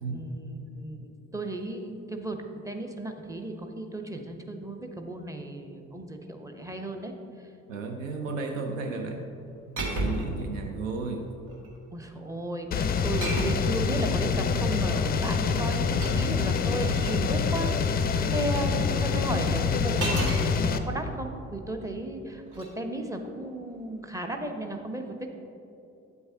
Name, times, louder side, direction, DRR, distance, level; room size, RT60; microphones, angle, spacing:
voice 1, 0.1-7.1 11.9-25.3, right 1 dB, 10° right, 4 dB, 0.7 m, -35 dB
voice 2, 7.7-9.3 9.7-11.3 18.4-18.9 19.3-19.6, right 3 dB, 75° right, 4 dB, 0.6 m, -34 dB
sound 1, 9.8-10.4 11.3-11.8 13.2-13.8 15.5-17.2 20.0-20.5 22.4-22.7, right 2 dB, 55° right, 1.4 m, -32 dB
sound 2, 12.7-20.8, left 5 dB, 25° left, 0.4 m, -26 dB
9.2 x 7.8 x 2.8 m, 2.8 s
figure-of-eight pair, 45°, 39 cm